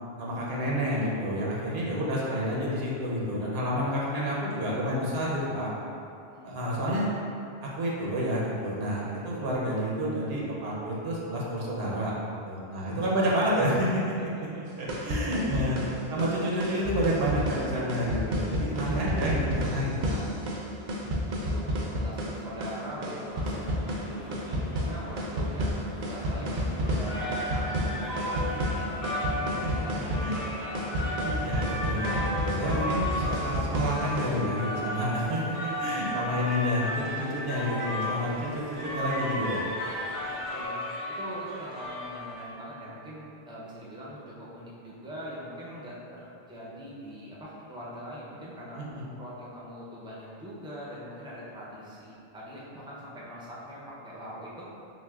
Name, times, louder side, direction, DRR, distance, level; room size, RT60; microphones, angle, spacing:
voice 1, 0.2-5.7 6.4-7.1 7.6-12.1 12.4-14.1 14.4-15.8 16.1-20.2 29.9-30.4 31.2-39.6 48.8-49.1, equal, 75° right, -5 dB, 0.9 m, -29 dB
voice 2, 6.3-6.8 12.7-13.3 14.5-14.6 15.5-16.0 20.9-23.6 24.0-25.8 26.0-31.3 35.9-36.1 37.0-37.3 40.3-40.8 41.2-48.8 49.2-54.7, equal, 5° right, -7 dB, 0.4 m, -43 dB
sound 1, 14.7-34.4, equal, 55° right, 0.6 m, -31 dB
sound 2, 23.2-40.6, equal, 85° left, 1.1 m, -46 dB
sound 3, 26.9-42.7, left 1 dB, 45° left, 0.8 m, -34 dB
6.0 x 2.2 x 2.3 m, 2.7 s
omnidirectional pair, 1.0 m